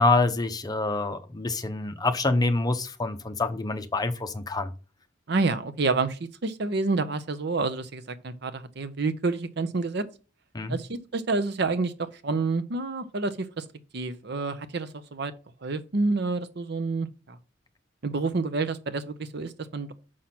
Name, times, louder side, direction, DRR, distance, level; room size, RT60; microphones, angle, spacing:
voice 1, 0.0-4.7 10.5-10.8, left 3 dB, 20° left, 0.7 m, -26 dB
voice 2, 5.3-10.1 10.7-13.7 13.9-15.3 15.6-17.4 18.0-19.9, right 3 dB, 60° right, 0.7 m, -28 dB
6.3 x 5.8 x 5.9 m
head